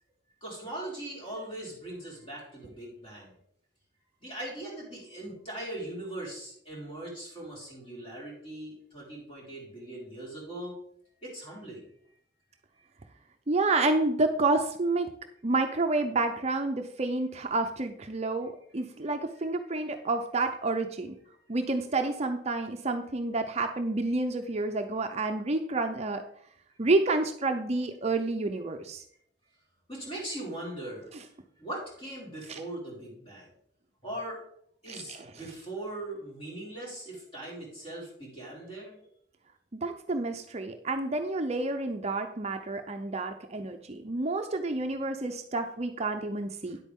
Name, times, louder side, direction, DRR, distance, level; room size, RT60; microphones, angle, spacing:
voice 1, 0.4-3.3 4.2-10.7 11.2-11.8 29.9-31.1 31.6-33.5 34.0-34.4 34.8-38.9, right 1 dB, 30° left, -5 dB, 4.8 m, -40 dB
voice 2, 13.5-15.1 15.4-21.1 21.5-26.2 26.8-29.0 31.1-31.2 32.5-32.6 34.9-35.3 39.8-46.8, right 2 dB, 35° right, 6 dB, 0.6 m, -29 dB
9.9 x 8.4 x 3.7 m, 0.67 s
head